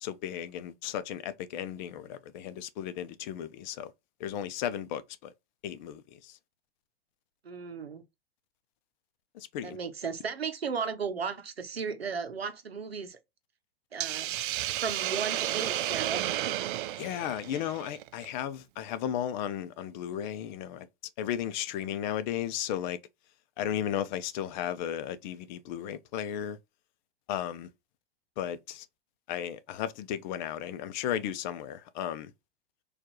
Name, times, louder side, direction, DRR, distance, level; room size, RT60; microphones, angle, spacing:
voice 1, 0.0-3.9 4.2-5.3 5.6-6.4 9.3-9.8 17.0-20.9 21.2-23.0 23.6-26.6 27.3-27.7 28.4-28.9 29.3-32.3, left 10 dB, 50° left, 0.6 m, -35 dB
voice 2, 7.4-8.0 9.6-13.2 13.9-16.7, right 5 dB, 90° right, 0.7 m, -35 dB
Hiss, 14.0-18.3, right 14 dB, 60° right, 0.4 m, -32 dB
4.3 x 2.5 x 3.0 m
figure-of-eight pair, 95°, 30 cm